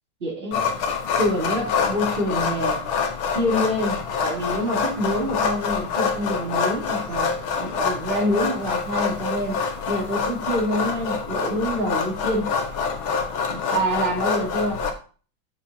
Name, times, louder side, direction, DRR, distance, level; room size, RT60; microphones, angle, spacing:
voice 1, 0.2-0.6 1.2-2.9 3.3-7.3 7.6-9.6 9.9-12.5 13.5-14.8, equal, 30° right, -4 dB, 3.3 m, -26 dB
sound 1, 0.5-14.9, left 5 dB, 85° left, 2.0 m, -26 dB
11.5 x 7.1 x 2.8 m, 0.38 s
omnidirectional pair, 2.2 m